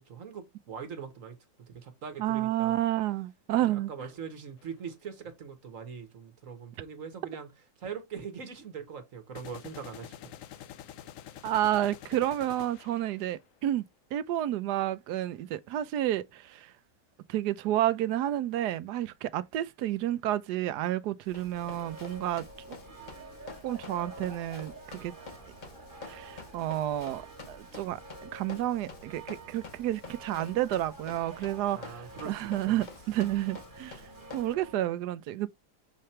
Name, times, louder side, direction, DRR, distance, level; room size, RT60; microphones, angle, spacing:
voice 1, 0.0-2.8 3.6-7.5 7.8-10.3 31.7-32.7, right 6 dB, 55° right, 1.5 m, -42 dB
voice 2, 2.2-3.9 11.4-13.8 14.1-16.7 17.3-22.4 23.6-25.1 26.1-27.2 27.5-34.1 34.3-35.5, right 13 dB, 85° right, 1.2 m, -30 dB
sound 1, 4.6-4.7 9.3-13.5, left 11 dB, 65° left, 0.8 m, -47 dB
Run, 21.3-34.5, left 4 dB, 35° left, 0.9 m, -49 dB
sound 2, 21.5-34.8, right 2 dB, 35° right, 1.3 m, -49 dB
6.7 x 3.3 x 4.3 m
omnidirectional pair, 1.7 m